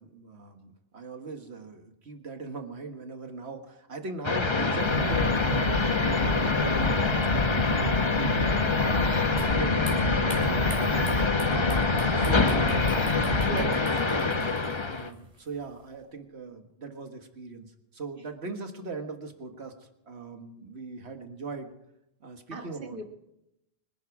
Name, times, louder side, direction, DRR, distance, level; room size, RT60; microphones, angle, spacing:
voice 1, 0.0-8.4 8.8-9.2 9.5-11.3 11.7-12.8 13.2-13.7 14.9-21.7 22.2-23.0, right 4 dB, 75° right, 1.9 m, -40 dB
sound 1, 4.2-15.1, left 3 dB, 30° left, 0.9 m, -26 dB
sound 2, 4.8-13.7, left 3 dB, 65° left, 1.8 m, -29 dB
sound 3, 9.4-15.9, right 1 dB, 35° right, 4.1 m, -47 dB
voice 2, 13.3-13.7 14.1-14.4 22.5-23.0, right 3 dB, 55° right, 2.0 m, -38 dB
25.0 x 11.5 x 4.9 m
omnidirectional pair, 1.1 m